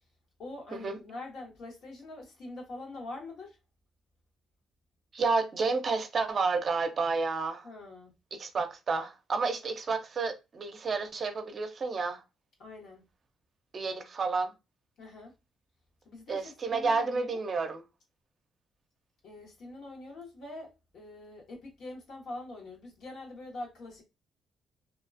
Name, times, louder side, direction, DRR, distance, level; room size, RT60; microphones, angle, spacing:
voice 1, 0.4-3.6 7.6-8.1 12.6-13.0 15.0-15.3 16.0-17.4 19.2-24.0, left 2 dB, 75° left, 1.3 m, -44 dB
voice 2, 5.1-7.7 8.4-12.2 13.7-14.5 16.3-17.8, right 4 dB, 45° right, 0.5 m, -30 dB
2.7 x 2.3 x 2.5 m
cardioid pair, 90°, 0 cm